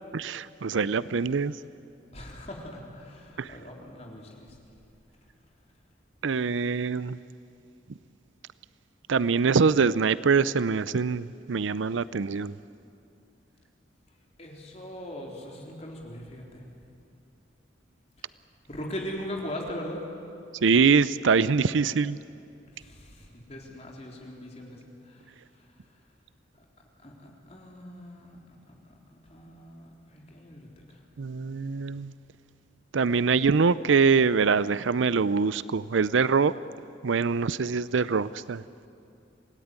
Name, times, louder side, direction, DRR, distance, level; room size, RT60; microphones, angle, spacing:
voice 1, 0.1-1.5 3.4-3.5 6.2-7.2 9.1-12.5 20.6-22.2 31.2-32.1 32.9-36.5 37.0-38.6, right 5 dB, 85° right, 0.5 m, -24 dB
voice 2, 2.1-4.6 14.4-16.7 18.2-18.3 18.7-20.0 22.7-25.7 26.5-26.6 27.0-31.0, equal, 35° left, 3.8 m, -41 dB
27.0 x 18.0 x 9.7 m
head